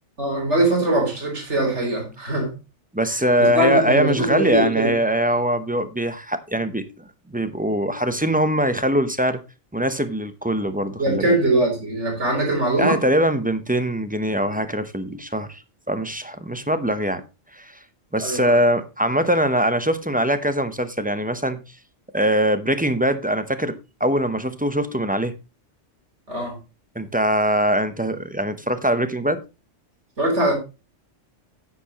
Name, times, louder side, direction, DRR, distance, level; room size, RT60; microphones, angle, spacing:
voice 1, 0.2-2.5 3.4-4.9 11.0-13.0 18.2-18.5 26.3-26.6 30.2-30.5, right 1 dB, 70° right, 4.2 m, -21 dB
voice 2, 2.9-6.9 7.3-9.4 9.7-11.4 12.8-15.6 15.9-17.2 17.5-17.8 18.1-21.6 22.1-25.3 27.0-29.4, right 1 dB, 10° right, 0.6 m, -22 dB
9.7 x 9.2 x 3.0 m
omnidirectional pair, 1.3 m